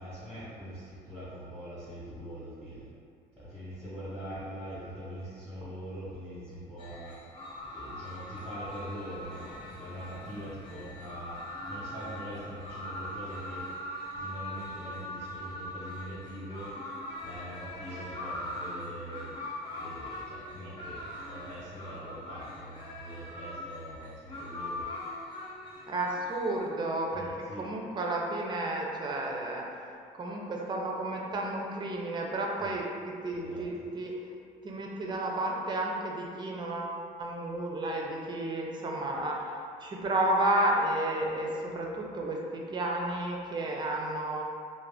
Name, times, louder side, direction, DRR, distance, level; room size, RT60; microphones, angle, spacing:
voice 1, 0.0-2.9 3.4-7.2 7.7-11.4 11.7-13.7 14.1-16.7 17.2-19.4 19.8-24.9 27.1-27.7 32.6-32.7 33.3-33.6, equal, 5° right, -11 dB, 0.8 m, -43 dB
sound 1, 6.8-26.7, left 1 dB, 30° left, 0.6 m, -41 dB
voice 2, 25.9-27.2 27.6-34.1 34.6-44.4, right 1 dB, 25° right, -1 dB, 0.4 m, -32 dB
2.4 x 2.1 x 3.3 m, 2.3 s
cardioid pair, 110°, 17 cm